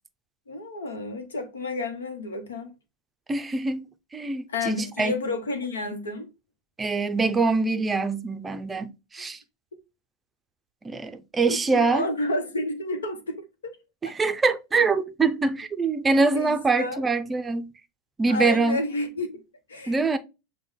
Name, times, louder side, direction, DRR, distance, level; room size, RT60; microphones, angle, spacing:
voice 1, 0.5-2.7 4.5-6.3 11.5-13.8 14.0-14.1 16.3-17.0 18.3-19.4 19.7-20.2, left 2 dB, 80° left, 0.9 m, -31 dB
voice 2, 3.3-3.8 4.1-5.1 6.8-9.4 10.8-12.1 14.0-17.7 18.2-18.8 19.9-20.2, right 3 dB, 20° right, 0.5 m, -24 dB
6.1 x 2.2 x 3.6 m
hypercardioid pair, 90°, 0 cm